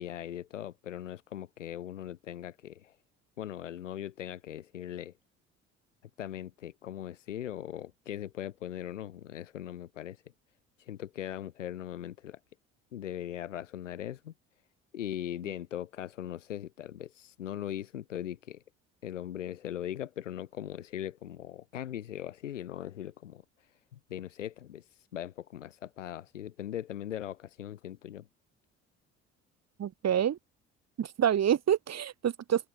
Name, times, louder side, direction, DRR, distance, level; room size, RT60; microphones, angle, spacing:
voice 1, 0.0-2.9 3.4-5.1 6.2-10.2 10.8-12.4 12.9-14.3 14.9-18.6 19.0-23.4 23.9-28.3, left 11 dB, 80° left, 3.4 m, -40 dB
voice 2, 29.8-30.4 31.0-32.7, right 9 dB, 45° right, 4.0 m, -27 dB
figure-of-eight pair, 55°, 36 cm